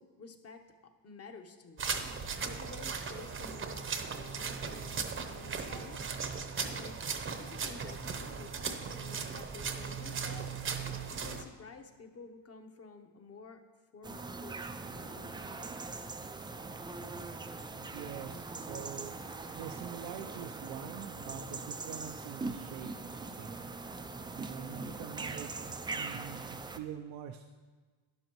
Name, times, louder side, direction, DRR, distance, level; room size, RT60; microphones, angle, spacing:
voice 1, 0.0-1.9 2.4-6.1 6.6-7.0 7.4-10.5 11.1-13.6 13.9-15.4, left 4 dB, 35° left, 6 dB, 1.0 m, -51 dB
sound 1, 1.8-11.4, right 5 dB, 30° right, 0.8 m, -37 dB
sound 2, 14.0-26.8, right 3 dB, 10° right, 0.3 m, -41 dB
voice 2, 17.9-22.9 23.2-23.5 24.3-27.5, right 9 dB, 90° right, 4 dB, 0.7 m, -45 dB
12.0 x 11.0 x 3.0 m, 1.4 s
cardioid pair, 120°, 43 cm